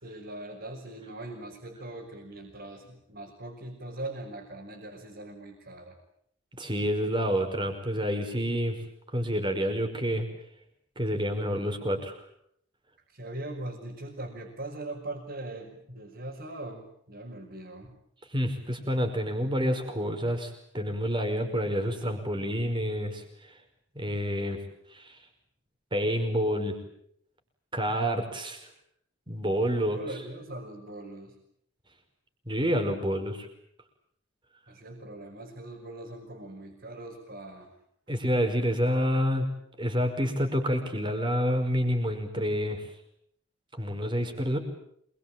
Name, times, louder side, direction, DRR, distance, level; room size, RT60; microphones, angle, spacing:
voice 1, 0.0-6.0 13.1-17.9 29.7-31.4 34.7-37.7, right 2 dB, 50° right, -2 dB, 5.9 m, -41 dB
voice 2, 6.6-8.8 9.1-10.3 11.0-12.1 18.3-23.2 24.0-24.6 24.9-25.2 25.9-26.8 27.7-28.6 29.3-30.0 32.5-33.5 38.1-39.5 39.8-42.8 43.8-44.6, equal, 25° right, 5 dB, 5.2 m, -28 dB
27.5 x 22.5 x 8.9 m, 0.70 s
head